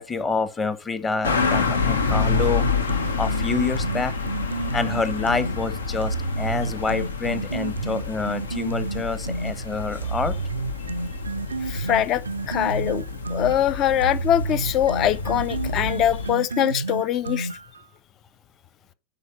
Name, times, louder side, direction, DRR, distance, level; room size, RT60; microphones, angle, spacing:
voice 1, 0.0-2.6 3.2-4.1 4.7-10.3, left 4 dB, 15° left, 1.1 m, -27 dB
sound 1, 1.2-16.3, left 4 dB, 70° left, 1.0 m, -28 dB
sound 2, 2.0-5.5 6.0-9.5 10.0-17.8, right 3 dB, 75° right, 0.4 m, -30 dB
voice 2, 11.6-13.0 13.3-17.5, left 11 dB, 35° left, 0.5 m, -23 dB
10.5 x 4.4 x 6.7 m
figure-of-eight pair, 90°, 0 cm